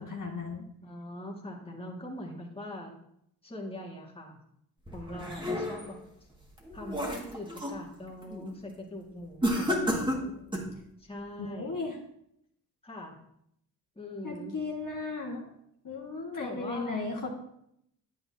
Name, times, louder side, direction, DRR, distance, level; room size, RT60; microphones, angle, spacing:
voice 1, 0.0-0.6 11.4-12.0 14.2-15.5 15.8-17.3, left 3 dB, 45° left, -1 dB, 1.6 m, -35 dB
voice 2, 0.8-2.9 3.4-4.4 4.9-6.0 6.7-10.4 11.0-11.8 12.8-13.2 14.0-14.6 16.4-17.1, left 1 dB, 15° left, -1 dB, 2.0 m, -42 dB
sound 1, 4.9-6.0 6.5-7.8 8.2-8.5 9.4-10.8, equal, 10° right, 2.0 m, -31 dB
8.8 x 8.6 x 2.8 m, 0.75 s
supercardioid pair, 55°, 43 cm